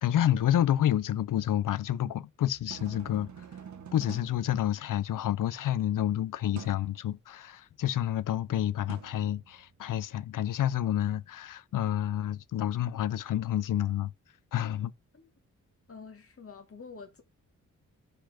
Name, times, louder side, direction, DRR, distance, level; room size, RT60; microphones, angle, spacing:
voice 1, 0.0-3.3 3.9-14.1 14.5-14.9, left 11 dB, 80° left, 0.6 m, -29 dB
sound 1, 2.5-5.3 6.6-7.0 8.9-10.0, right 7 dB, 60° right, 1.3 m, -47 dB
voice 2, 15.9-17.2, left 5 dB, 45° left, 2.2 m, -47 dB
5.0 x 4.5 x 5.8 m
cardioid pair, 95°, 32 cm